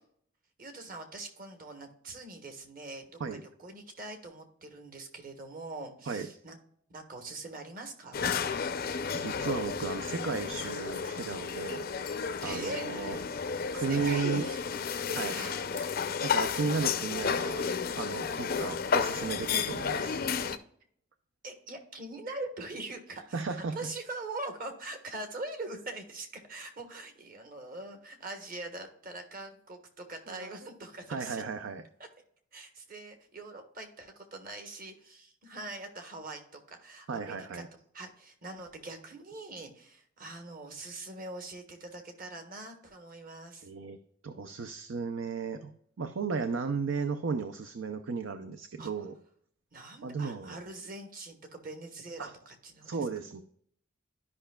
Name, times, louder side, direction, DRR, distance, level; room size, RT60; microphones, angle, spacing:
voice 1, 0.6-6.6 6.9-8.3 12.4-13.2 13.7-14.6 14.9-15.6 21.4-23.4 23.7-31.4 32.5-37.6 37.9-43.7 48.8-48.9 49.7-52.9, right 2 dB, 45° right, 5 dB, 1.4 m, -43 dB
sound 1, 8.1-20.6, left 6 dB, 50° left, 0.5 m, -32 dB
voice 2, 9.1-11.8 12.4-13.2 13.7-14.5 15.1-15.3 15.8-15.9 16.2-17.6 17.9-20.2 23.3-23.9 30.3-30.6 31.1-31.8 37.1-37.7 43.6-44.0 44.2-49.1 50.0-50.6 52.2-52.3 52.8-53.4, right 5 dB, 70° right, 9 dB, 0.5 m, -34 dB
12.0 x 5.5 x 2.3 m, 0.65 s
head